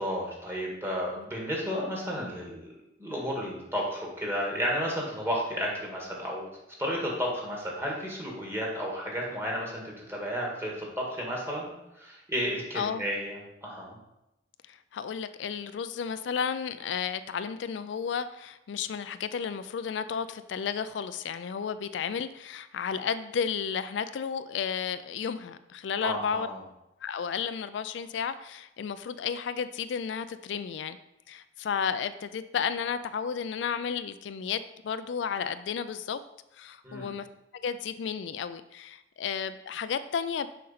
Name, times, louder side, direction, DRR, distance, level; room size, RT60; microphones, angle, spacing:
voice 1, 0.0-2.7 3.0-6.5 6.8-11.7 12.0-14.0 26.0-26.6 36.8-37.1, equal, 15° right, -2 dB, 1.7 m, -32 dB
voice 2, 14.7-26.5 27.0-31.0 31.3-36.2 36.6-37.3 37.5-40.5, left 7 dB, 80° left, 12 dB, 0.4 m, -33 dB
6.6 x 5.3 x 4.1 m, 0.88 s
head